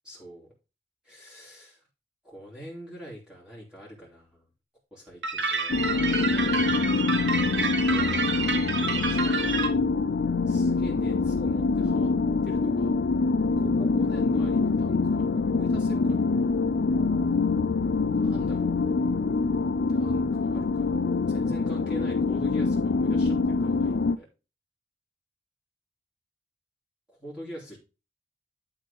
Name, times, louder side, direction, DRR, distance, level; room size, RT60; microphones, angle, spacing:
voice 1, 0.0-0.5 1.0-1.8 2.2-4.5 4.9-5.7 7.4-9.8 10.5-12.1 12.4-12.9 13.6-16.5 18.1-18.8 19.9-21.0 21.3-24.3 27.1-27.8, right 1 dB, 5° right, -6 dB, 2.9 m, -44 dB
sound 1, 5.2-9.7, right 4 dB, 70° right, 1.6 m, -29 dB
sound 2, 5.7-24.2, left 4 dB, 65° left, 0.4 m, -25 dB
11.0 x 3.8 x 5.2 m, 0.31 s
head